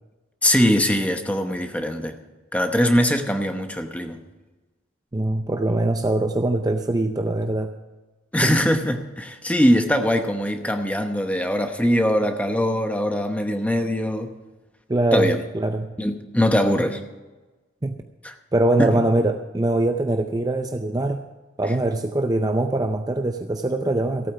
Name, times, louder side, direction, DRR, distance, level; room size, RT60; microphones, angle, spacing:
voice 1, 0.4-2.2 2.5-4.2 8.3-14.3 15.1-15.4 16.0-17.0 18.2-18.3 18.8-19.0, equal, 5° left, 6 dB, 0.9 m, -21 dB
voice 2, 5.1-7.7 8.4-8.5 14.9-16.0 17.8-18.0 18.5-21.2 21.6-24.3, right 2 dB, 20° right, 6 dB, 0.5 m, -23 dB
15.0 x 9.0 x 5.9 m, 1.2 s
head